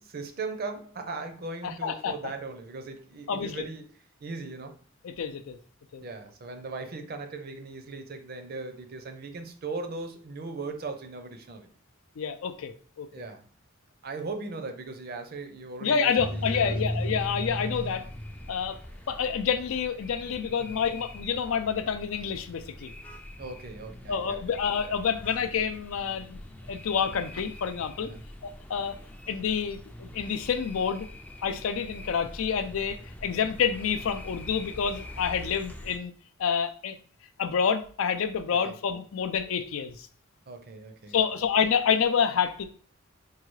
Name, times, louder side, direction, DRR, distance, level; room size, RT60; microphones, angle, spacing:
voice 1, 0.0-3.9 4.2-4.8 6.0-11.7 13.1-13.5 14.0-16.8 20.6-20.8 23.4-24.4 28.0-28.2 38.5-38.8 40.5-41.3, right 3 dB, 50° right, 7 dB, 0.6 m, -38 dB
voice 2, 1.6-2.2 3.3-3.6 5.0-5.6 5.9-6.0 12.2-13.1 15.8-18.1 18.5-18.8 19.1-22.9 24.1-26.4 26.7-28.1 28.4-29.0 29.3-31.1 31.4-36.1 36.4-37.0 37.4-40.1 41.1-42.7, left 7 dB, 80° left, 10 dB, 0.4 m, -28 dB
sound 1, 16.2-36.0, equal, 5° left, 0.3 m, -40 dB
4.7 x 2.3 x 3.1 m, 0.44 s
head